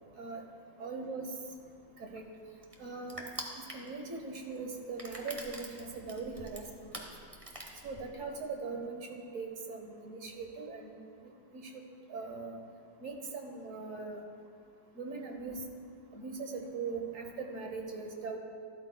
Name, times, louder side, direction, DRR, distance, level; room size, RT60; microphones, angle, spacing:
voice 1, 0.8-1.3 2.0-2.3 2.8-3.3 3.5-7.1 7.8-10.9 11.5-11.8 12.1-12.6 13.0-14.2 14.9-15.6 16.1-18.4, right 4 dB, 50° right, 3 dB, 1.2 m, -40 dB
Crushing, 1.6-8.4, right 1 dB, 25° right, 0.7 m, -46 dB
12.5 x 12.5 x 2.3 m, 2.4 s
omnidirectional pair, 2.0 m